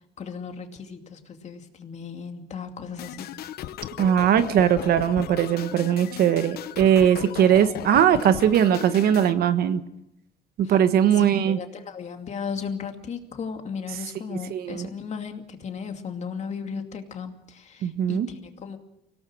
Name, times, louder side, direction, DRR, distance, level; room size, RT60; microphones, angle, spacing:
voice 1, 0.2-3.3 10.6-10.7 11.1-18.8, left 6 dB, 40° left, 5 dB, 2.5 m, -36 dB
sound 1, 3.0-9.3, left 12 dB, 70° left, 1.0 m, -36 dB
voice 2, 4.0-9.8 10.6-11.6 14.5-14.9 17.8-18.3, right 9 dB, 65° right, 11 dB, 1.4 m, -20 dB
24.5 x 17.5 x 6.3 m, 0.84 s
cardioid pair, 110°, 17 cm